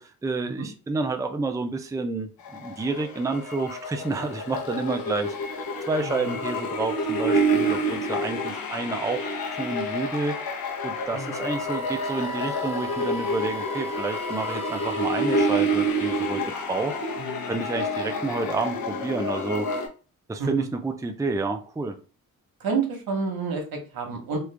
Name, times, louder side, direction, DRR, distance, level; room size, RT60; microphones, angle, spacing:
voice 1, 0.0-9.2 9.5-10.3 10.8-16.4 16.7-16.9 17.5-19.7 20.3-22.0, right 3 dB, 10° right, 6 dB, 0.4 m, -29 dB
sound 1, 2.4-19.9, right 1 dB, 80° left, 0.9 m, -28 dB
voice 2, 6.0-6.3 11.1-11.4 17.2-17.6 20.4-20.6 22.6-24.4, right 4 dB, 85° right, 2 dB, 1.1 m, -30 dB
Wind instrument woodwind instrument, 11.5-15.6, right 1 dB, 15° left, 0.9 m, -36 dB
3.1 x 2.4 x 3.3 m, 0.35 s
cardioid pair, 85°, 35 cm